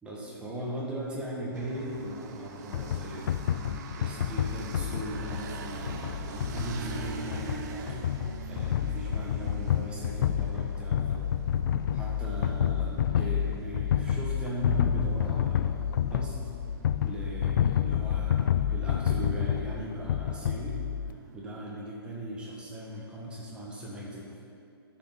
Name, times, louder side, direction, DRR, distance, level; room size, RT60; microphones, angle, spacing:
voice 1, 0.0-3.3 4.0-8.1 8.5-11.3 11.9-16.4 17.0-20.8 21.3-24.4, right 1 dB, 5° right, -5 dB, 1.8 m, -38 dB
sound 1, 1.5-21.4, right 6 dB, 45° right, 0.8 m, -45 dB
sound 2, 2.7-21.1, left 9 dB, 55° left, 0.4 m, -29 dB
13.0 x 6.7 x 4.3 m, 2.6 s
hypercardioid pair, 145°, 13 cm